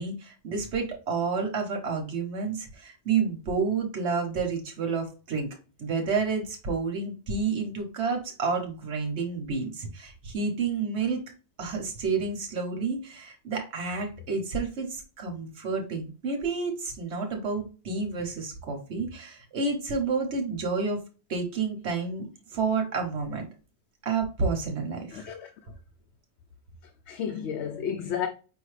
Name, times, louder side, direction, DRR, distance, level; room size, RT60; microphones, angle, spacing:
voice 1, 0.0-5.5 5.8-11.2 11.6-21.0 21.3-23.5 24.0-25.2, right 4 dB, 85° right, 1.2 m, -30 dB
voice 2, 25.1-25.5 27.1-28.3, left 8 dB, 85° left, 0.9 m, -32 dB
5.2 x 2.7 x 3.2 m
omnidirectional pair, 1.1 m